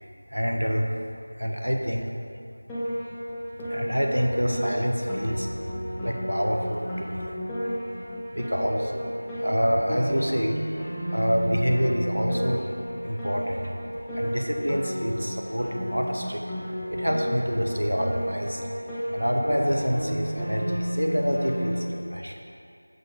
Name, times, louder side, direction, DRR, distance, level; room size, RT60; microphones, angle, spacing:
voice 1, 0.3-0.9 1.4-2.1 3.6-7.3 8.3-9.1 9.4-12.6 13.0-13.7 14.1-16.4 16.9-18.6 19.1-22.4, equal, 85° right, 1 dB, 1.0 m, -27 dB
Piano, 2.7-21.9, equal, 5° left, 0.5 m, -32 dB
8.6 x 6.6 x 3.8 m, 2.4 s
figure-of-eight pair, 175°, 0 cm